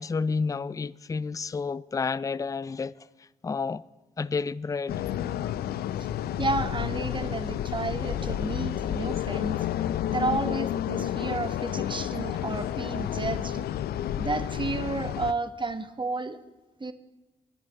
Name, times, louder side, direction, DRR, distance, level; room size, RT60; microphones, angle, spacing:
voice 1, 0.0-3.1 3.4-3.8 4.2-5.0, left 4 dB, 20° left, 0.4 m, -30 dB
sound 1, 4.9-15.3, left 11 dB, 75° left, 0.5 m, -30 dB
voice 2, 6.4-9.6 10.1-13.7 14.2-16.4 16.8-16.9, right 3 dB, 30° right, 1.3 m, -32 dB
10.5 x 10.0 x 8.2 m
hypercardioid pair, 40°, 16 cm